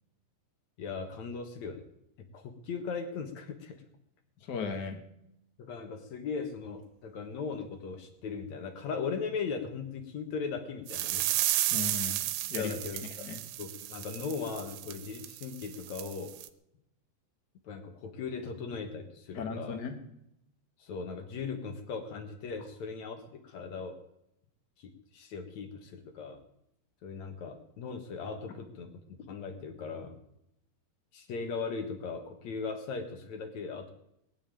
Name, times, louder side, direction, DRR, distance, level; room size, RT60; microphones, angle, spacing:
voice 1, 0.8-1.8 2.3-3.8 5.6-11.3 12.6-13.3 13.6-16.4 17.6-19.8 20.8-24.0 24.8-26.4 27.0-28.9 29.2-30.2 31.1-33.9, left 5 dB, 55° left, 6 dB, 2.2 m, -38 dB
voice 2, 4.4-5.0 11.7-12.2 12.5-12.7 13.2-13.4 19.3-19.9, left 5 dB, 80° left, 4 dB, 0.9 m, -36 dB
sound 1, 10.9-16.5, right 14 dB, 85° right, 2.9 m, -33 dB
20.0 x 7.1 x 9.1 m, 0.79 s
omnidirectional pair, 4.9 m